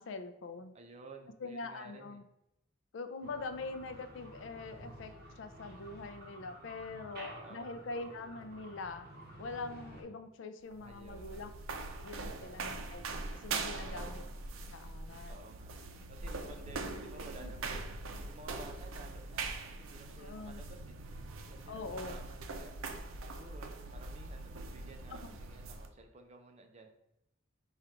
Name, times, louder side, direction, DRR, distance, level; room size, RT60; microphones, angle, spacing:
voice 1, 0.0-0.7 1.4-2.2 2.9-9.1 9.4-11.5 12.0-13.0 13.3-14.2 14.7-15.5 17.4-17.5 20.2-20.6 21.7-22.2, left 3 dB, 70° left, 9 dB, 0.4 m, -43 dB
voice 2, 0.7-2.2 7.4-7.7 10.8-11.6 12.2-12.8 13.8-14.1 15.3-15.7 16.1-21.0 21.4-22.7 23.2-27.0, right 2 dB, 35° right, 4 dB, 0.5 m, -54 dB
sound 1, 3.2-10.0, right 1 dB, 50° right, 0.9 m, -51 dB
Down building stairs, 10.6-25.9, right 3 dB, 90° right, 0.5 m, -42 dB
5.0 x 2.4 x 4.3 m, 0.85 s
head